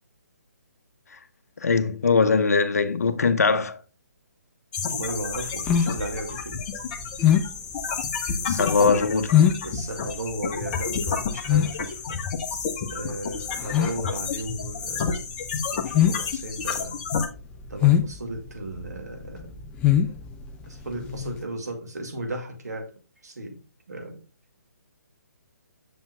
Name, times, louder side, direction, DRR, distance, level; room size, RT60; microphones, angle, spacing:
voice 1, 1.6-3.8 8.6-9.3, left 4 dB, 65° left, 0.8 m, -21 dB
sound 1, 4.7-17.3, left 5 dB, 30° left, 1.0 m, -31 dB
voice 2, 4.9-6.6 8.4-9.3 9.6-12.2 12.9-15.2 15.7-17.0 17.7-19.6 20.7-22.9 23.2-23.6 23.9-24.2, right 1 dB, 75° right, 2.2 m, -35 dB
sound 2, 5.0-21.4, left 10 dB, 10° left, 0.4 m, -24 dB
7.2 x 6.9 x 2.3 m
figure-of-eight pair, 140°, 9 cm